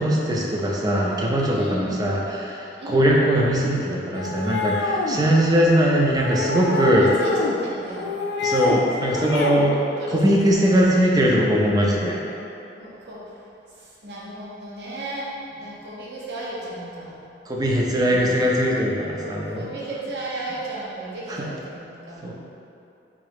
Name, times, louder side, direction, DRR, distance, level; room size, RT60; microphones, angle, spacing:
voice 1, 0.0-7.1 8.4-9.8 10.1-12.2 17.5-19.7 21.3-21.5 22.2-22.3, equal, 20° right, -2 dB, 0.4 m, -20 dB
voice 2, 1.5-2.0 2.8-3.1 6.9-8.1 9.0-9.6 10.0-10.8 12.8-13.2 13.8-17.2 17.9-18.5 19.2-22.3, right 1 dB, 70° right, -6 dB, 0.8 m, -34 dB
sound 1, 4.1-5.2 6.2-7.6 7.9-8.8 9.1-9.6, left 3 dB, 75° left, 0.4 m, -26 dB
3.7 x 2.7 x 3.5 m, 2.7 s
head